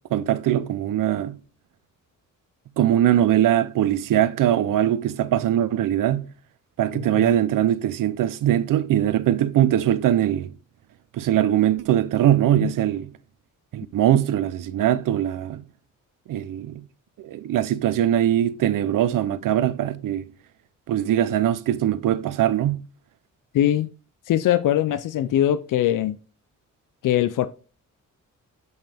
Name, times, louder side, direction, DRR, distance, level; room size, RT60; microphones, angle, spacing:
voice 1, 0.1-1.3 2.8-6.2 6.8-10.5 11.1-13.1 13.7-15.6 16.3-16.8 17.2-20.2 20.9-22.8, right 11 dB, 85° right, 0.6 m, -21 dB
voice 2, 6.9-7.3 12.6-12.7 23.5-23.9 24.3-26.2 27.0-27.5, left 12 dB, 80° left, 0.5 m, -22 dB
7.9 x 5.4 x 3.4 m
cardioid pair, 120°, 31 cm